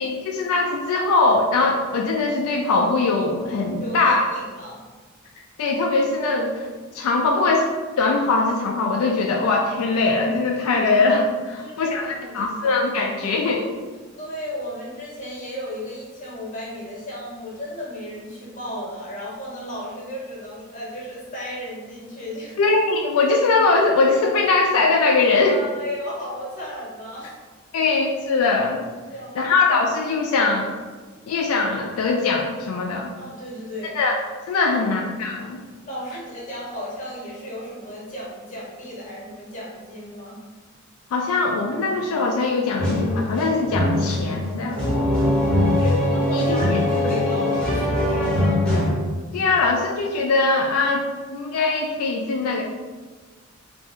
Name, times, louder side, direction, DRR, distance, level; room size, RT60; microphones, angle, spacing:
voice 1, 0.0-4.2 5.6-6.7 6.9-7.7 8.0-13.6 22.6-25.6 27.7-28.8 29.4-30.7 31.3-33.1 34.0-34.2 34.5-35.6 41.1-44.8 45.8-46.0 46.3-46.6 49.3-52.6, left 3 dB, 85° left, 1 dB, 0.3 m, -21 dB
voice 2, 3.8-4.8 11.6-12.8 14.1-22.7 25.4-27.3 27.7-27.9 29.1-29.5 33.2-34.0 34.7-35.0 35.9-40.4 45.2-48.6, equal, 35° left, -5 dB, 0.9 m, -34 dB
sound 1, 42.8-48.9, left 1 dB, 5° left, 0.6 m, -21 dB
2.5 x 2.2 x 3.5 m, 1.4 s
head